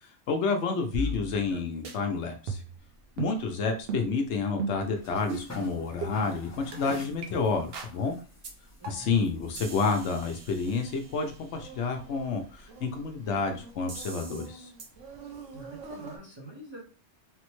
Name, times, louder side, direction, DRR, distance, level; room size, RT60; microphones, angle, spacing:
voice 1, 0.3-2.6 3.2-8.2 8.9-14.7, left 4 dB, 75° left, 5 dB, 0.9 m, -29 dB
sound 1, 0.9-1.6 1.8-2.0 2.5-2.8 3.2-3.4 3.9-4.1 4.6-4.9 5.3-5.5 6.0-6.1 6.7-6.8 7.2-7.3 7.7-8.0 8.4-8.5 8.8-9.2 9.5-11.4 13.9-14.5 14.8-14.9, right 3 dB, 60° right, 0.8 m, -37 dB
voice 2, 1.0-1.6 8.8-9.3 15.5-16.8, right 1 dB, 25° right, -4 dB, 0.8 m, -46 dB
sound 2, 2.8-14.0, left 1 dB, 15° left, 0.6 m, -50 dB
Insect, 9.9-16.2, right 4 dB, 90° right, 1.1 m, -48 dB
3.4 x 2.1 x 3.0 m, 0.37 s
omnidirectional pair, 1.2 m